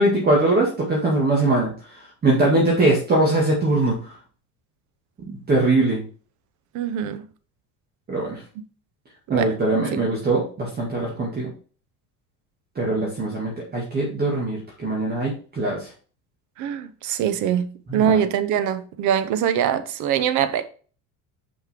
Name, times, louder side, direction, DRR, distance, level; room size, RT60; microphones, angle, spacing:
voice 1, 0.0-1.7 2.2-4.0 5.3-6.0 8.1-8.4 9.3-11.5 12.8-15.9 17.9-18.1, right 2 dB, 25° right, 2.0 m, -21 dB
voice 2, 6.7-7.2 9.3-9.5 9.9-10.0 16.6-17.7 17.9-20.6, right 9 dB, 55° right, 0.9 m, -23 dB
5.8 x 5.3 x 3.7 m
cardioid pair, 145°, 36 cm